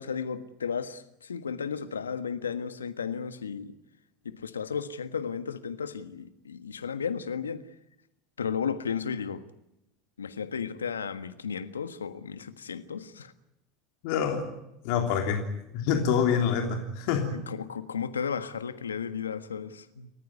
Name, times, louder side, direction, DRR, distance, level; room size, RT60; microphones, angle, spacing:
voice 1, 0.0-3.7 4.2-7.6 8.4-9.4 10.2-13.3 16.6-16.8 17.3-20.1, left 6 dB, 90° left, 1.5 m, -34 dB
voice 2, 14.0-14.5 14.8-17.3, left 7 dB, 60° left, 3.3 m, -26 dB
30.0 x 14.5 x 9.5 m
hypercardioid pair, 85°, 0 cm